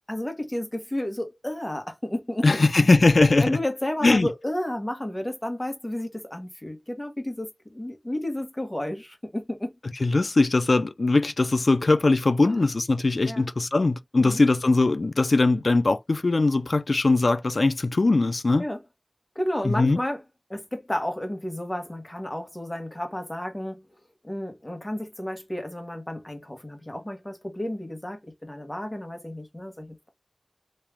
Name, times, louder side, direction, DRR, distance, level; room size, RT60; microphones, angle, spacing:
voice 1, 0.1-2.5 3.4-9.7 12.4-12.5 13.2-13.5 14.2-14.4 18.6-18.8 19.3-20.2 20.5-23.9 24.2-30.1, left 1 dB, 25° left, 1.3 m, -32 dB
voice 2, 2.4-3.6 4.0-4.3 10.0-18.6 19.6-20.0, left 3 dB, 85° left, 0.3 m, -21 dB
3.2 x 2.9 x 3.4 m
wide cardioid pair, 50°, 0 cm